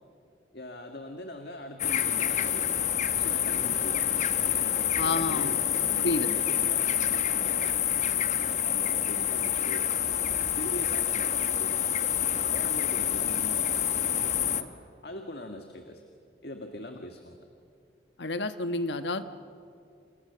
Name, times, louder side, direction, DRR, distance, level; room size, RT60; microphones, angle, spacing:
voice 1, 0.5-7.7 8.0-12.0 12.5-14.7 15.0-16.0 16.4-17.4, left 1 dB, 60° left, 4 dB, 1.7 m, -42 dB
sound 1, 1.8-14.6, left 10 dB, 40° left, 1.0 m, -27 dB
voice 2, 5.0-5.6 6.0-6.3 18.2-19.2, left 2 dB, 80° left, 10 dB, 1.3 m, -29 dB
29.0 x 28.0 x 6.9 m, 2.4 s
head